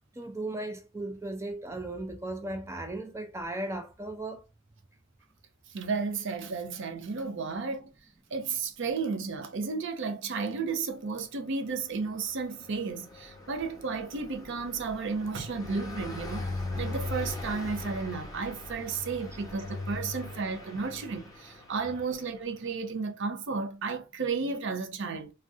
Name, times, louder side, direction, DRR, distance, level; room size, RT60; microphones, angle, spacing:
voice 1, 0.2-4.4, right 2 dB, 15° right, 0.4 m, -36 dB
voice 2, 5.7-7.9 8.3-25.3, right 4 dB, 60° right, 0.5 m, -33 dB
Car passing by, 11.5-22.6, left 2 dB, 20° left, 0.8 m, -40 dB
2.5 x 2.2 x 3.5 m
head